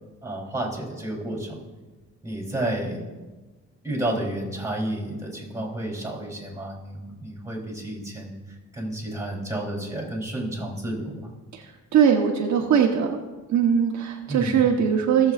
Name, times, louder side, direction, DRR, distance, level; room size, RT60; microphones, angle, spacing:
voice 1, 0.2-1.6 2.2-3.0 3.8-8.3 8.7-11.2 14.3-14.6, right 1 dB, 10° right, -3 dB, 3.5 m, -31 dB
voice 2, 11.5-13.2 13.5-15.3, right 7 dB, 65° right, 1 dB, 1.1 m, -21 dB
18.0 x 7.2 x 2.5 m, 1.2 s
cardioid pair, 90°, 30 cm